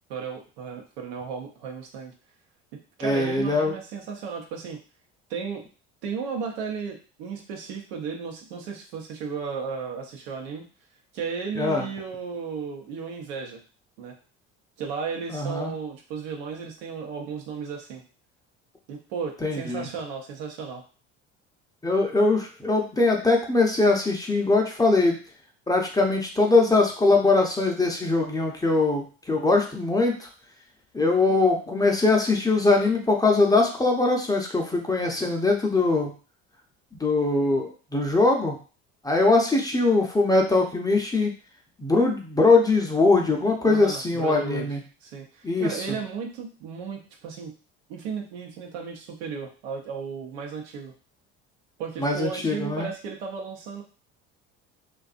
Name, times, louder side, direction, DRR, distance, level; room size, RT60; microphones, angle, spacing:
voice 1, 0.1-2.1 3.0-4.8 5.3-5.7 6.0-10.7 11.1-13.6 14.0-14.1 14.8-18.0 18.9-20.8 43.6-44.7 45.0-47.5 47.9-50.9 51.8-53.8, right 6 dB, 85° right, 1 dB, 0.8 m, -34 dB
voice 2, 3.0-3.8 11.6-11.8 15.3-15.7 19.4-19.9 21.8-25.2 25.7-30.3 30.9-36.1 37.0-38.6 39.0-41.3 41.8-44.8 45.4-46.0 52.0-52.9, left 3 dB, 10° left, 1 dB, 0.5 m, -22 dB
2.5 x 2.4 x 2.4 m, 0.36 s
supercardioid pair, 85°, 33 cm